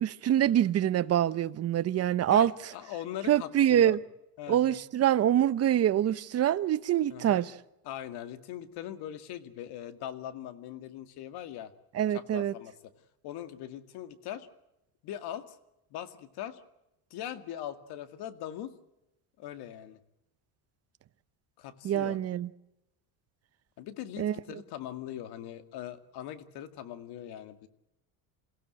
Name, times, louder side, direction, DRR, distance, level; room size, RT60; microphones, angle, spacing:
voice 1, 0.0-2.7 3.3-4.0 4.5-7.5 11.9-12.5 21.8-22.5 24.2-24.4, right 11 dB, 35° right, 0.8 m, -25 dB
voice 2, 2.3-4.0 4.4-4.8 7.1-7.5 7.8-11.7 12.1-12.9 13.2-14.5 15.0-15.6 15.9-16.6 17.1-18.7 19.4-20.0 21.6-22.2 23.8-27.7, left 11 dB, 65° left, 2.2 m, -41 dB
28.5 x 16.5 x 7.8 m
cardioid pair, 140°, 42 cm